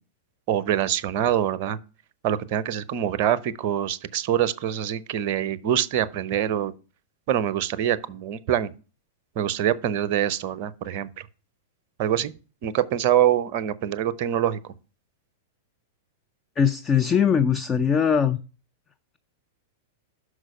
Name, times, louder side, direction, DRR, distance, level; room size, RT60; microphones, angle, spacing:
voice 1, 0.5-1.8 2.2-6.7 7.3-8.7 9.4-11.1 12.0-12.3 12.6-14.6, right 10 dB, 50° right, 0.6 m, -24 dB
voice 2, 16.6-18.4, left 7 dB, 25° left, 0.5 m, -21 dB
6.2 x 4.9 x 6.5 m
figure-of-eight pair, 100°, 0 cm